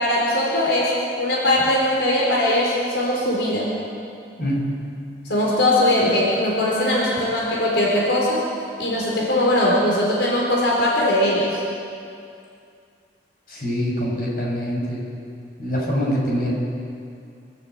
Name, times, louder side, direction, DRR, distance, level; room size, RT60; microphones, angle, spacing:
voice 1, 0.0-3.7 5.2-8.4 8.8-11.6, left 1 dB, 85° left, -4 dB, 4.6 m, -20 dB
voice 2, 4.4-4.7 13.5-15.0 15.6-16.5, equal, 50° left, -3 dB, 6.7 m, -24 dB
26.0 x 14.0 x 8.4 m, 2.5 s
head